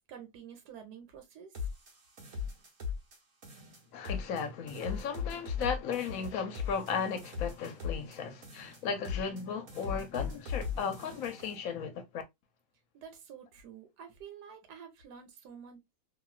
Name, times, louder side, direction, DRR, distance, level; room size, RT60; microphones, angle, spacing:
voice 1, 0.1-1.7 12.9-15.8, right 7 dB, 85° right, 1.3 m, -49 dB
sound 1, 1.5-3.2 3.4-4.4 4.7-8.2 8.4-9.4 9.7-11.6, left 6 dB, 55° right, 1.4 m, -38 dB
voice 2, 3.9-12.2, left 6 dB, 65° left, 1.0 m, -35 dB
3.0 x 2.7 x 2.2 m
omnidirectional pair, 1.7 m